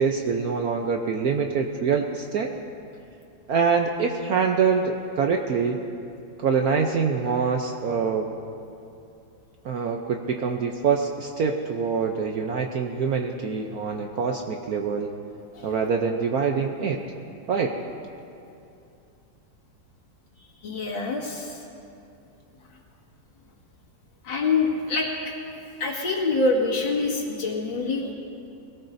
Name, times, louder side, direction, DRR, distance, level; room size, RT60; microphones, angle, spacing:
voice 1, 0.0-2.5 3.5-5.8 6.4-8.3 9.6-15.1 15.6-17.0 17.5-17.8, right 5 dB, 65° right, 3 dB, 1.0 m, -25 dB
voice 2, 20.6-21.6 24.2-25.1 25.8-28.1, left 3 dB, 85° left, -2 dB, 2.6 m, -25 dB
21.5 x 18.0 x 2.6 m, 2.6 s
omnidirectional pair, 2.1 m